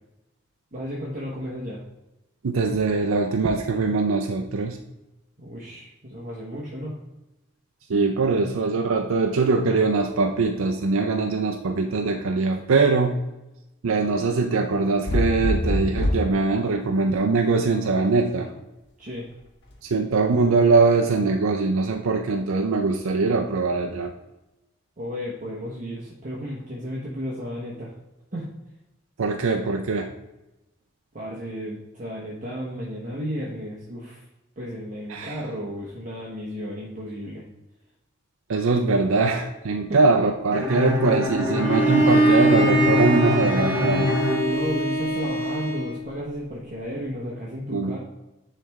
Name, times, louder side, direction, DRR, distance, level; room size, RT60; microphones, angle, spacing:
voice 1, 0.7-1.8 5.4-7.0 19.0-19.3 25.0-27.9 28.3-28.5 31.1-34.3 34.6-37.4 39.9-40.0 44.4-48.0, equal, 35° right, -5 dB, 1.0 m, -33 dB
voice 2, 2.4-4.8 7.9-13.1 13.8-18.5 19.8-24.1 29.2-30.1 35.1-35.4 38.5-44.1 47.7-48.0, right 3 dB, 85° right, 3 dB, 0.5 m, -22 dB
sound 1, 15.1-16.3 18.0-18.5, left 1 dB, 55° left, 1.2 m, -24 dB
Bowed string instrument, 40.5-45.3, left 2 dB, 20° right, 1.2 m, -25 dB
Bowed string instrument 2, 41.5-46.0, right 1 dB, 20° left, 2.1 m, -22 dB
9.8 x 3.3 x 3.5 m, 0.98 s
head